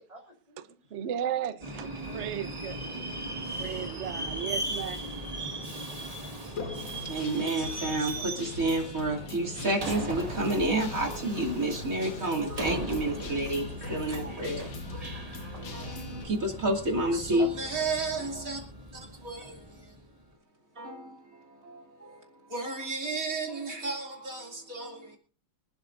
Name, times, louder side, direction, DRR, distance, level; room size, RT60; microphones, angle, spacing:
voice 1, 0.1-0.9 2.6-3.5 17.4-17.9, left 1 dB, 15° left, 3.3 m, -47 dB
voice 2, 0.9-2.8 3.6-5.0, right 10 dB, 60° right, 0.7 m, -35 dB
Subway metro underground, 1.6-20.1, right 1 dB, 20° right, 1.6 m, -38 dB
Guitar, 6.6-16.2, left 4 dB, 60° left, 2.3 m, -41 dB
voice 3, 7.0-14.8 15.7-18.6 18.9-19.9 20.8-25.2, right 2 dB, 40° right, 3.0 m, -31 dB
25.0 x 12.0 x 2.6 m
omnidirectional pair, 2.4 m